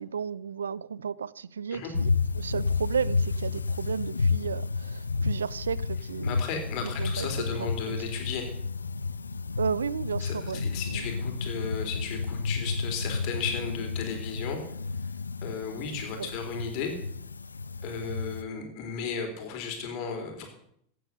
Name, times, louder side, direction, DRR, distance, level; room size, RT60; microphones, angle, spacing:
voice 1, 0.0-6.4 6.8-7.3 7.6-8.1 9.6-11.1 16.2-16.3, right 6 dB, 80° right, 0.4 m, -33 dB
sound 1, 1.9-18.4, left 4 dB, 85° left, 0.5 m, -31 dB
voice 2, 6.2-8.5 10.2-14.6 15.4-16.9 17.8-20.5, left 6 dB, 50° left, 4.0 m, -35 dB
16.0 x 8.5 x 6.7 m
figure-of-eight pair, 90°, 0 cm